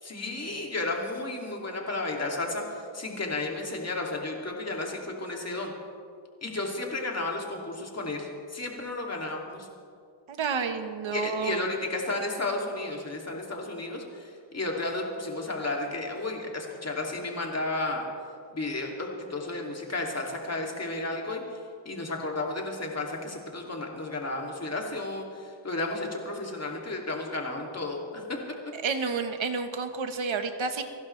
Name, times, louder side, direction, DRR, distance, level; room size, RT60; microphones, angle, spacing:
voice 1, 0.0-5.7 6.4-9.7 11.1-18.0 18.5-21.6 21.8-28.4, left 2 dB, 30° left, 0 dB, 2.7 m, -33 dB
voice 2, 10.3-11.6 28.8-30.8, right 5 dB, 70° right, 7 dB, 1.4 m, -30 dB
29.0 x 11.5 x 3.3 m, 2.3 s
wide cardioid pair, 95°, 49 cm